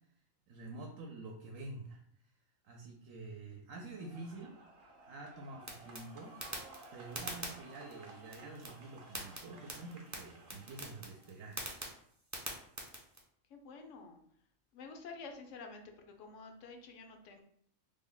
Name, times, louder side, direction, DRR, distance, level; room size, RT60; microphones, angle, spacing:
voice 1, 0.5-2.0 2.6-4.6 5.0-6.4 6.9-11.6, right 2 dB, 85° right, 1 dB, 1.0 m, -48 dB
sound 1, 3.9-11.3, right 2 dB, 55° right, 0.8 m, -56 dB
sound 2, 5.6-13.2, right 1 dB, 25° right, 0.3 m, -46 dB
voice 2, 13.5-14.2 14.7-17.4, left 4 dB, 75° left, 4 dB, 0.9 m, -50 dB
3.4 x 2.1 x 3.8 m, 0.67 s
omnidirectional pair, 1.3 m